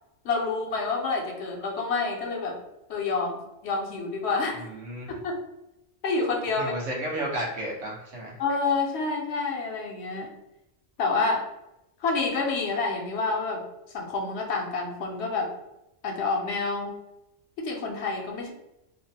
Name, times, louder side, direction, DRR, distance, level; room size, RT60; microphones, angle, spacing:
voice 1, 0.2-2.6 2.9-4.6 5.1-5.4 6.0-6.7 8.4-10.3 11.0-11.4 12.0-13.6 13.9-15.5 16.0-17.0 17.6-18.5, left 3 dB, 65° left, 1 dB, 0.8 m, -28 dB
voice 2, 4.5-5.1 6.6-8.3, right 1 dB, 75° right, -3 dB, 1.2 m, -33 dB
3.1 x 2.0 x 2.6 m, 0.88 s
omnidirectional pair, 1.3 m